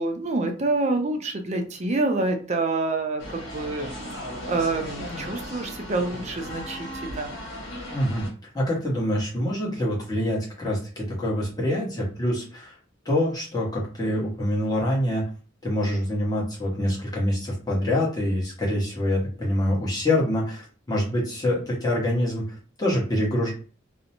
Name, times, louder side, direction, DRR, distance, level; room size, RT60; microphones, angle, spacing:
voice 1, 0.0-3.9 4.5-7.4, right 2 dB, 35° right, 4 dB, 0.5 m, -27 dB
sound 1, 3.2-8.3, left 1 dB, 70° left, 1.1 m, -36 dB
voice 2, 7.9-8.3 8.5-12.8 13.0-15.3 15.6-23.5, left 1 dB, 20° left, -4 dB, 0.9 m, -25 dB
2.5 x 2.0 x 2.8 m, 0.39 s
head